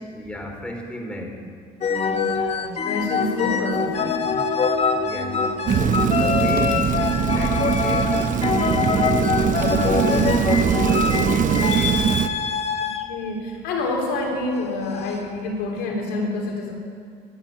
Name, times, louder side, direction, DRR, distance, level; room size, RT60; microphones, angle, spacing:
voice 1, 0.1-1.5 4.9-9.3 9.8-12.1, left 1 dB, 5° left, 2 dB, 3.2 m, -35 dB
sound 1, 1.8-13.1 14.3-14.6, left 5 dB, 40° left, 1.2 m, -24 dB
voice 2, 2.1-4.4 10.0-10.5 12.8-16.7, left 2 dB, 85° left, 1 dB, 3.6 m, -28 dB
Rain, 5.7-12.3, right 7 dB, 50° right, 0.9 m, -21 dB
13.5 x 12.0 x 9.1 m, 2.1 s
cardioid pair, 110°, 17 cm